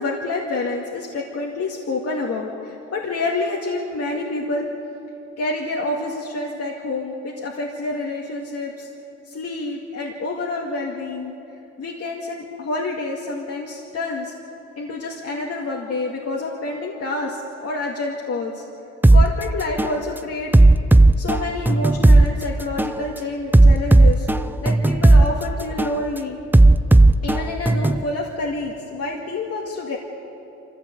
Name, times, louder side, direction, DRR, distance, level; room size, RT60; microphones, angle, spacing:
voice 1, 0.0-4.7 5.4-8.9 9.3-11.3 11.8-14.3 14.8-18.6 19.1-20.5 21.2-24.3 24.6-26.4 27.2-30.0, left 2 dB, 55° left, -2 dB, 2.3 m, -28 dB
sound 1, 19.0-19.3 19.8-20.0 20.5-22.3 22.8-23.0 23.5-25.3 25.8-26.0 26.5-28.0, right 2 dB, 5° right, 0.6 m, -13 dB
24.5 x 15.0 x 8.2 m, 2.9 s
cardioid pair, 90°, 30 cm